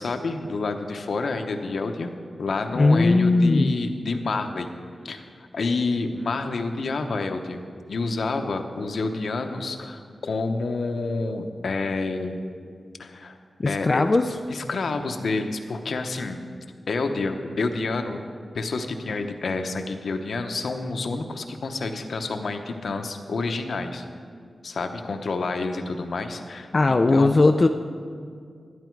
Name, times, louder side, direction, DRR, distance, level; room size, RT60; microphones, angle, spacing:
voice 1, 0.0-2.1 2.4-4.7 5.0-5.2 5.5-7.6 7.9-12.4 13.0-13.4 13.7-14.0 14.5-16.4 16.9-18.2 18.5-24.0 24.6-27.3, left 3 dB, 65° left, 6 dB, 0.8 m, -28 dB
voice 2, 2.8-3.7 13.6-14.4 26.7-27.7, left 2 dB, 30° left, 5 dB, 0.3 m, -18 dB
12.0 x 11.0 x 4.6 m, 2.1 s
wide cardioid pair, 155°, 0 cm